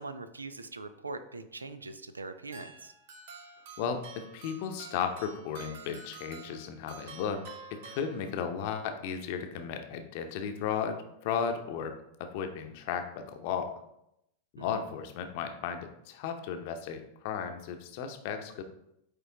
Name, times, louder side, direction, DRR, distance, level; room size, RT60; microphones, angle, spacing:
voice 1, 0.0-2.9 14.6-14.8, right 3 dB, 75° right, 11 dB, 0.4 m, -42 dB
sound 1, 2.5-8.7, right 4 dB, 55° right, 1.0 m, -49 dB
voice 2, 3.8-7.4 7.7-13.7 14.5-18.6, left 7 dB, 50° left, 6 dB, 0.8 m, -35 dB
8.6 x 3.4 x 3.6 m, 0.81 s
figure-of-eight pair, 90°, 0 cm